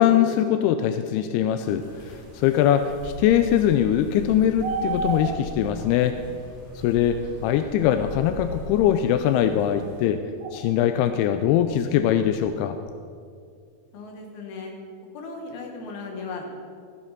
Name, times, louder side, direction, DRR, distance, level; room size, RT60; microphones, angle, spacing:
voice 1, 0.0-6.2 6.8-10.2 10.5-12.8, left 10 dB, 85° left, 9 dB, 2.4 m, -22 dB
sound 1, 1.7-10.1, equal, 20° right, 2.7 m, -40 dB
sound 2, 4.2-5.7 8.1-8.2 10.4-10.8 11.1-11.2 11.5-12.5, right 4 dB, 75° right, 1.8 m, -30 dB
voice 2, 13.9-14.7 15.1-16.5, left 3 dB, 70° left, 1 dB, 3.4 m, -36 dB
15.0 x 8.2 x 5.9 m, 2.3 s
omnidirectional pair, 4.9 m